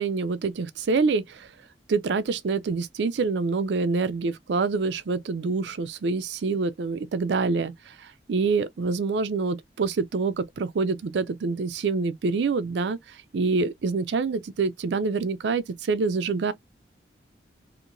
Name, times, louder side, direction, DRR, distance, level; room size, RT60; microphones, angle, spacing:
voice 1, 0.0-1.5 1.9-16.5, right 4 dB, 75° right, 0.4 m, -26 dB
2.8 x 2.1 x 2.5 m
head